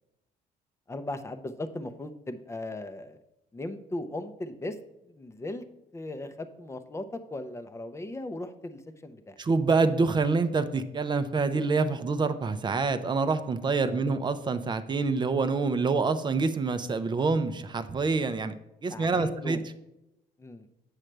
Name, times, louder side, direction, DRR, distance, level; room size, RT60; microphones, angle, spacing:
voice 1, 0.9-3.2 3.5-4.8 5.0-5.6 5.9-9.4 13.8-14.0 18.9-19.6 20.4-20.7, left 1 dB, 15° left, 9 dB, 0.6 m, -37 dB
voice 2, 9.4-18.5 18.8-19.6, right 4 dB, 25° right, 10 dB, 0.5 m, -26 dB
7.5 x 6.4 x 3.3 m, 0.89 s
cardioid pair, 110°, 17 cm